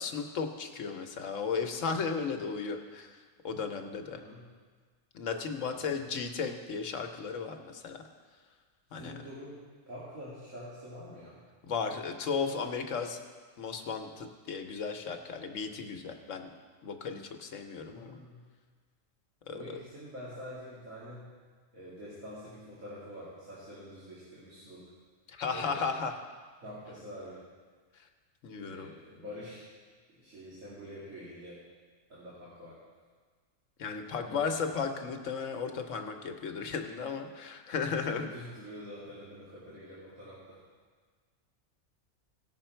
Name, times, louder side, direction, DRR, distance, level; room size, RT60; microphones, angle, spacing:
voice 1, 0.0-4.2 5.1-8.0 8.9-9.1 11.6-13.2 13.6-16.5 16.8-18.2 19.5-19.8 25.3-26.1 27.9-28.0 28.4-28.9 33.8-38.3, left 5 dB, 75° left, 5 dB, 1.2 m, -35 dB
voice 2, 4.0-4.4 5.6-5.8 8.9-9.6 9.9-11.4 17.8-18.4 19.5-21.3 21.7-24.8 25.5-25.9 26.6-27.4 28.6-29.7 30.1-31.6 32.1-32.8 34.0-34.8 38.0-40.6, equal, 85° right, -10 dB, 2.7 m, -46 dB
17.0 x 6.1 x 4.4 m, 1.5 s
omnidirectional pair, 1.4 m